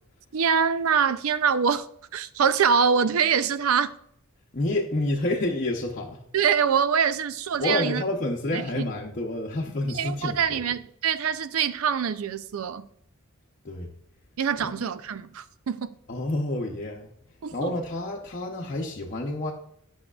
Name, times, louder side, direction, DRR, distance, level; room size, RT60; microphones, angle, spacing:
voice 1, 0.3-1.9 2.1-3.9 6.3-8.0 8.5-8.8 9.9-12.9 14.4-16.0 17.4-17.7, right 7 dB, 85° right, 0.5 m, -24 dB
voice 2, 4.5-6.2 7.6-10.6 13.6-13.9 14.6-14.9 16.1-17.1 17.5-19.5, left 1 dB, 40° left, 0.7 m, -29 dB
10.5 x 6.4 x 2.4 m
head